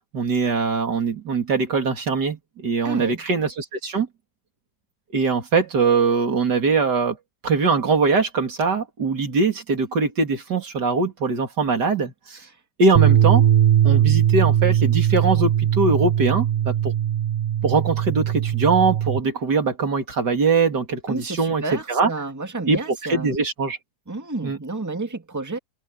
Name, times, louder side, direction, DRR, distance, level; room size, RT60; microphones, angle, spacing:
voice 1, 0.1-4.1 5.1-7.2 7.4-12.4 12.8-13.5 13.8-16.9 17.6-22.1 22.7-23.8 24.4-24.6, right 4 dB, 90° right, 3.3 m, -22 dB
voice 2, 2.8-3.2 21.1-23.3 24.1-25.6, right 2 dB, 10° right, 1.8 m, -30 dB
sound 1, 13.0-19.2, right 10 dB, 35° right, 0.9 m, -19 dB
omnidirectional pair, 1.8 m